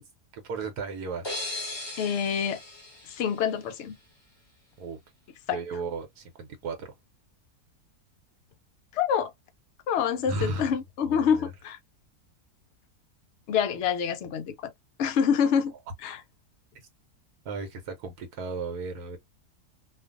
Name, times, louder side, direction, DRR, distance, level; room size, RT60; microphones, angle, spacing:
voice 1, 0.3-1.3 4.8-5.0 5.5-6.9 10.3-10.7 11.1-11.5 17.4-19.2, right 3 dB, 80° right, 1.2 m, -35 dB
sound 1, 1.2-4.0, left 2 dB, 30° left, 0.5 m, -38 dB
voice 2, 2.0-2.6 3.1-4.0 5.5-5.6 8.9-9.3 9.9-11.8 13.5-14.7 15.0-15.7 16.0-16.2, left 7 dB, 70° left, 0.6 m, -26 dB
2.5 x 2.4 x 2.4 m
omnidirectional pair, 1.7 m